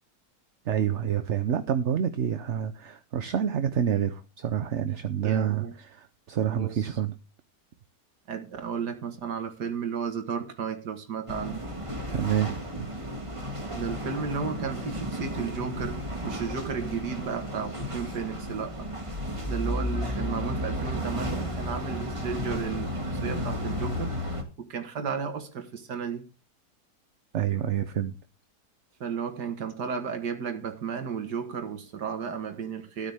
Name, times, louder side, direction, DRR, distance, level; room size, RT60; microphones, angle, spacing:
voice 1, 0.7-7.1 12.1-12.9 27.3-28.1, right 9 dB, 55° right, 1.0 m, -28 dB
voice 2, 5.2-5.7 6.5-6.9 8.3-11.6 13.7-18.9 19.5-26.3 29.0-33.1, right 6 dB, 85° right, 2.0 m, -34 dB
sound 1, 11.3-24.4, equal, 20° right, 2.1 m, -33 dB
13.5 x 9.4 x 3.5 m
omnidirectional pair, 1.7 m